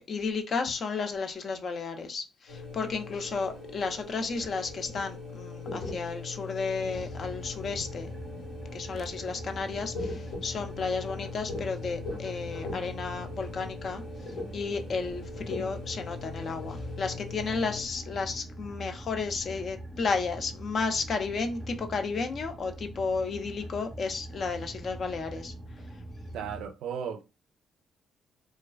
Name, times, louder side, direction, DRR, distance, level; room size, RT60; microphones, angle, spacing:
voice 1, 0.0-8.1 8.7-14.0 14.5-25.5, left 4 dB, 50° left, 0.5 m, -33 dB
sound 1, 2.5-17.8, left 3 dB, 80° left, 1.3 m, -40 dB
sound 2, 6.9-26.7, right 1 dB, 5° right, 0.7 m, -43 dB
voice 2, 26.3-27.2, right 7 dB, 80° right, 0.4 m, -35 dB
2.3 x 2.3 x 2.3 m
cardioid pair, 90°, 0 cm